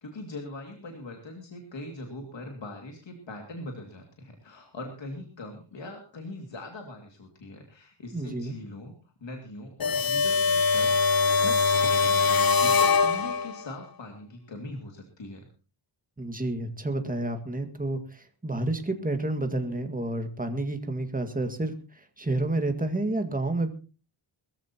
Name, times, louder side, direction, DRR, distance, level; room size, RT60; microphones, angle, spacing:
voice 1, 0.0-15.5, left 2 dB, 60° left, 3 dB, 2.6 m, -41 dB
voice 2, 8.1-8.5 16.2-21.7 22.2-23.7, right 2 dB, 15° right, 6 dB, 2.0 m, -29 dB
sound 1, 9.8-13.7, left 5 dB, 45° left, 0.9 m, -22 dB
21.5 x 14.0 x 3.0 m, 0.34 s
wide cardioid pair, 105°, 50 cm